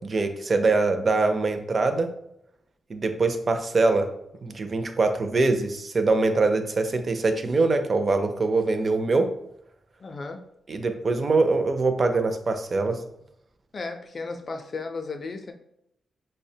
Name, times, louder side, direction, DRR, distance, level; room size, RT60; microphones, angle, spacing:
voice 1, 0.0-2.1 2.9-4.1 4.4-9.3 10.7-13.0, right 3 dB, 35° right, 7 dB, 0.4 m, -23 dB
voice 2, 10.0-10.4 13.7-15.5, left 3 dB, 35° left, 6 dB, 0.4 m, -34 dB
5.4 x 2.1 x 2.7 m, 0.78 s
wide cardioid pair, 145°, 0 cm